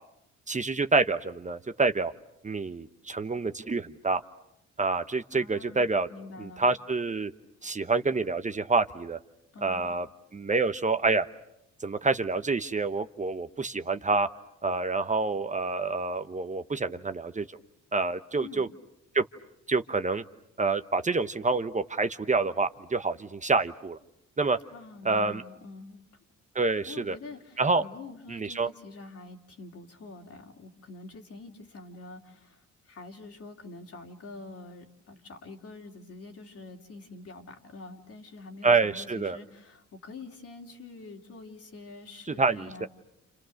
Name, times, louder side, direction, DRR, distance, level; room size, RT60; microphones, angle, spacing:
voice 1, 0.5-2.1 2.4-4.2 4.8-6.1 6.4-7.3 7.6-9.2 9.6-10.1 10.3-11.3 11.8-14.3 14.6-17.5 17.9-18.7 19.1-19.2 19.7-20.2 20.6-24.0 24.4-24.6 25.0-25.4 26.5-27.2 27.6-27.8 28.3-28.7 38.6-39.4 42.4-42.9, right 3 dB, 25° right, 9 dB, 1.0 m, -27 dB
voice 2, 5.3-6.6 9.5-10.0 18.4-18.6 24.6-26.0 26.9-42.9, left 3 dB, 50° left, 2 dB, 3.2 m, -46 dB
29.5 x 29.0 x 6.5 m, 0.84 s
cardioid pair, 90°, 30 cm